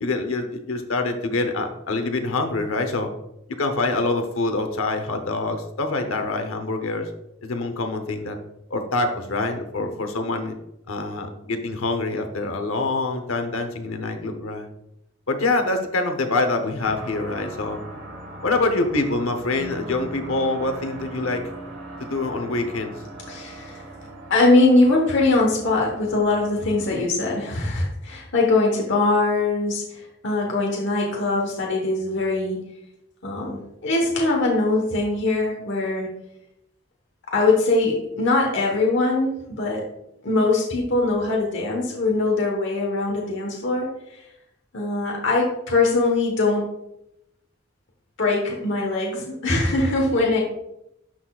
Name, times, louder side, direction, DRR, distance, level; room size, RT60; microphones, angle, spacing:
voice 1, 0.0-3.1 3.6-7.1 7.4-8.4 8.7-10.5 10.9-14.7 15.3-17.8 18.4-21.4 22.1-23.0, left 2 dB, 80° left, 6 dB, 0.9 m, -25 dB
sound 1, 16.8-27.0, right 1 dB, 80° right, 2.1 m, -39 dB
voice 2, 23.3-23.8 24.3-32.6 33.2-36.1 37.3-39.8 40.2-43.9 44.7-46.7 48.2-50.4, left 2 dB, 60° left, -1 dB, 1.2 m, -22 dB
12.0 x 4.1 x 2.4 m, 0.82 s
head